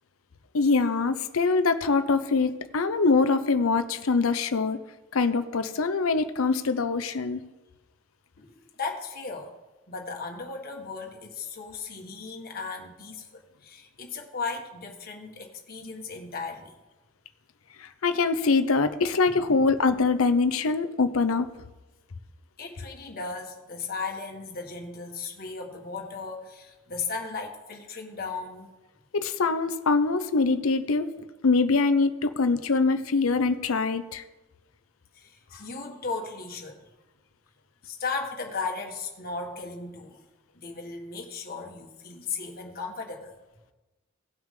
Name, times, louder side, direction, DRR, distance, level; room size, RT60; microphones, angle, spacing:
voice 1, 0.5-4.8 5.1-7.4 17.8-21.5 29.1-31.1 31.4-34.2, left 4 dB, 75° left, 11 dB, 0.7 m, -24 dB
voice 2, 8.4-9.5 9.9-16.7 19.3-19.6 22.6-28.7 35.1-36.9 37.8-40.2 40.5-43.4, left 4 dB, 45° left, 1 dB, 1.7 m, -36 dB
18.0 x 6.0 x 3.8 m, 1.1 s
head